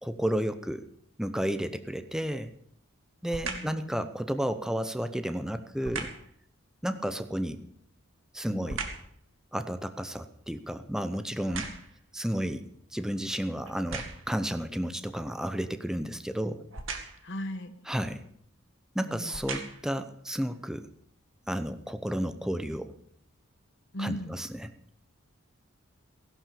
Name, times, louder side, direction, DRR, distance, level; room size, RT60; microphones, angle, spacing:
voice 1, 0.0-0.9 1.2-2.5 3.2-6.1 6.8-7.6 8.3-8.8 9.5-11.7 12.1-16.6 17.9-18.2 18.9-20.9 21.5-22.9 24.0-24.7, equal, 5° right, 9 dB, 0.7 m, -32 dB
sound 1, 3.3-3.8 5.8-6.3 7.7-9.1 9.6-12.1 12.8-12.9 13.7-14.4 16.7-17.3 18.3-18.5 19.1-20.0 20.6-20.7, right 4 dB, 65° right, 2.2 m, -39 dB
voice 2, 3.4-4.0 8.5-8.7 17.2-17.7 19.1-19.3 23.9-24.4, equal, 55° left, 9 dB, 1.4 m, -38 dB
16.0 x 11.5 x 6.9 m, 0.67 s
head